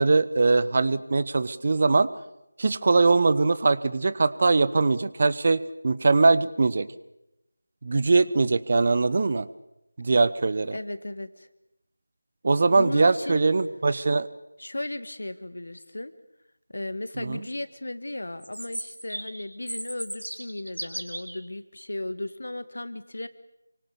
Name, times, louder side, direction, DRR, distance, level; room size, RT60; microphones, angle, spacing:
voice 1, 0.0-2.1 2.6-6.9 7.8-9.5 10.0-10.8 12.4-14.3 17.2-17.4, right 3 dB, 35° right, 17 dB, 0.9 m, -21 dB
voice 2, 10.7-11.5 12.7-13.4 14.6-16.1 16.7-23.3, left 1 dB, 55° left, 12 dB, 2.0 m, -35 dB
Chirp tweet, 18.4-21.4, right 1 dB, 75° right, 4.9 m, -36 dB
28.0 x 25.0 x 7.1 m, 0.88 s
figure-of-eight pair, 165°, 0 cm